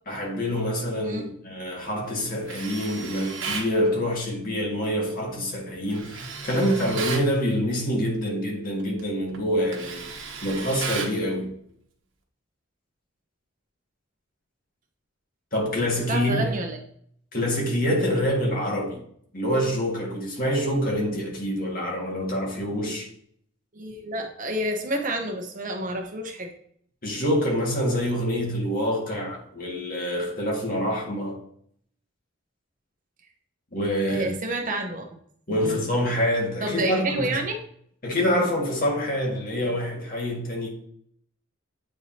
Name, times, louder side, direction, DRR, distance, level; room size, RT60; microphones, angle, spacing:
voice 1, 0.1-10.1 10.4-11.5 15.5-16.6 17.3-19.0 19.3-23.1 27.0-31.4 33.7-34.3 35.5-37.4 38.0-40.7, equal, 45° left, 1.9 m, -26 dB
voice 2, 1.0-1.3 16.1-16.8 23.7-26.5 34.1-35.1 35.5-35.7 36.6-37.6, right 1 dB, 40° right, 0.9 m, -29 dB
Tools, 2.5-3.7 5.9-7.3 8.8-9.0 9.3-11.2, right 5 dB, 70° right, 1.2 m, -34 dB
8.3 x 4.7 x 2.8 m
head